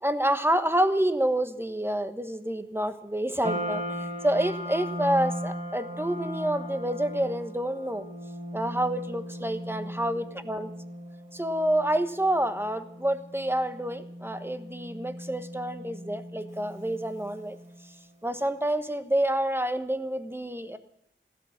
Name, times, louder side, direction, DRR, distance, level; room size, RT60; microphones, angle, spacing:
voice 1, 0.0-8.1 8.5-10.7 11.3-17.6 18.2-20.8, right 1 dB, 10° right, 9 dB, 1.3 m, -28 dB
sound 1, 3.4-17.8, equal, 40° right, 3.4 m, -38 dB
15.5 x 12.5 x 7.3 m, 0.74 s
wide cardioid pair, 50°, 20 cm